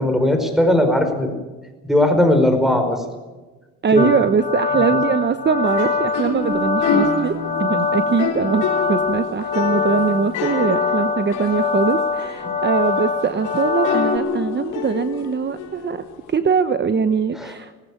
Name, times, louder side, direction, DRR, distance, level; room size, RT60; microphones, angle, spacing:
voice 1, 0.0-1.3 1.8-3.0 3.9-4.1 17.3-17.5, left 1 dB, ahead, 7 dB, 5.0 m, -18 dB
voice 2, 3.8-17.7, right 6 dB, 35° right, 10 dB, 1.0 m, -22 dB
sound 1, 4.0-14.2, left 4 dB, 25° left, 1.5 m, -23 dB
sound 2, 5.6-16.3, left 5 dB, 85° left, 4.0 m, -28 dB
19.5 x 16.0 x 8.6 m, 1.2 s
cardioid pair, 90°, 30 cm